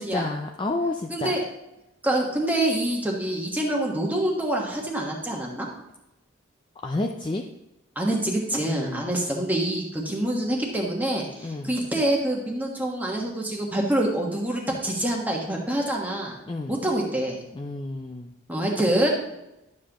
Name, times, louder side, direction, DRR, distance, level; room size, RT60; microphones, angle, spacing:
voice 1, 0.0-1.4 6.8-7.5 8.7-9.1 11.4-11.7 16.5-16.7 17.5-18.3, left 2 dB, 25° left, 3 dB, 0.4 m, -30 dB
voice 2, 1.1-1.4 2.0-5.7 7.9-16.4 16.7-17.4 18.5-19.1, right 1 dB, 10° right, -1 dB, 1.3 m, -26 dB
11.5 x 7.5 x 3.0 m, 0.92 s
head